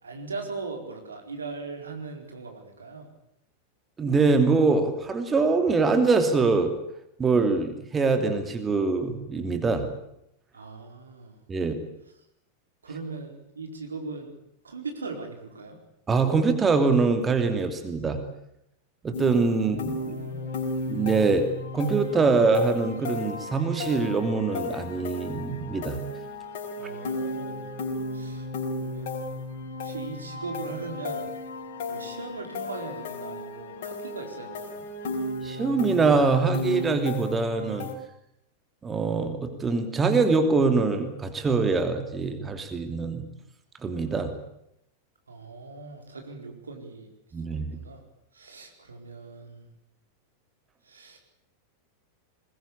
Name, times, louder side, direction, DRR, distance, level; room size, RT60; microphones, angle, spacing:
voice 1, 0.0-3.1 10.5-11.4 12.8-14.3 14.6-15.8 19.6-20.5 26.8-27.6 28.1-28.5 28.8-29.4 29.8-31.3 31.9-34.8 45.3-47.1 47.8-48.0 48.3-49.7 50.9-51.2, right 4 dB, 75° right, 4 dB, 4.4 m, -39 dB
voice 2, 4.0-6.7 7.2-9.9 11.5-11.7 16.1-18.2 19.0-20.2 20.9-21.5 21.7-26.0 35.4-37.9 38.8-43.2 43.8-44.3 47.3-47.8, right 4 dB, 20° right, 7 dB, 2.9 m, -24 dB
sound 1, 19.1-37.9, left 2 dB, 50° left, 5.4 m, -34 dB
22.0 x 21.0 x 8.6 m, 0.78 s
figure-of-eight pair, 90°, 0 cm